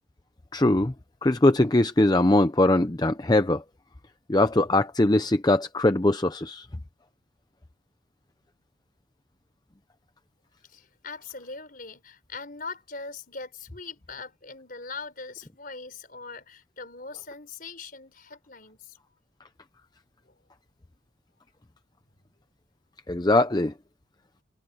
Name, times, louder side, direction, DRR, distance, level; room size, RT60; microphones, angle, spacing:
voice 1, 0.5-0.9 1.2-3.6 4.3-6.7 23.1-23.7, left 2 dB, 20° left, 0.6 m, -21 dB
voice 2, 10.7-19.0 20.2-20.3, left 4 dB, 45° left, 5.0 m, -41 dB
head